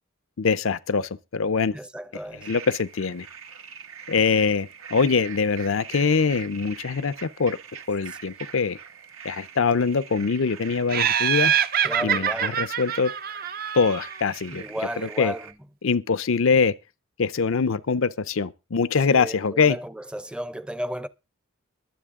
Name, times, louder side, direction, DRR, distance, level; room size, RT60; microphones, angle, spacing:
voice 1, 0.4-1.8 2.4-3.3 4.1-7.6 7.9-8.8 9.2-11.5 12.0-13.1 13.7-14.6 15.0-15.3 15.8-16.7 17.2-19.8, left 5 dB, 70° left, 0.6 m, -23 dB
voice 2, 1.7-2.5 11.8-12.6 14.5-15.5 19.1-21.1, equal, 5° right, 0.6 m, -33 dB
sound 1, 2.4-15.5, right 7 dB, 85° right, 1.7 m, -43 dB
Laughter, 10.9-14.2, right 9 dB, 45° right, 0.6 m, -25 dB
22.5 x 7.7 x 3.7 m
head